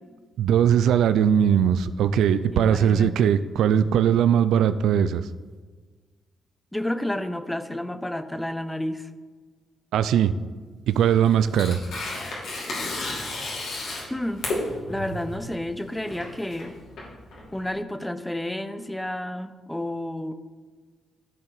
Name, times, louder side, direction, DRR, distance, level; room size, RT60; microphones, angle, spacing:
voice 1, 0.4-5.2 9.9-10.3 10.9-11.8, right 9 dB, 80° right, 13 dB, 0.3 m, -20 dB
voice 2, 2.5-3.4 6.7-9.1 14.1-14.5 14.9-16.8 17.5-20.3, left 1 dB, 10° left, 11 dB, 0.7 m, -31 dB
Tearing, 10.9-17.7, left 2 dB, 75° left, 2.4 m, -33 dB
13.0 x 4.4 x 4.0 m, 1.4 s
supercardioid pair, 60°, 0 cm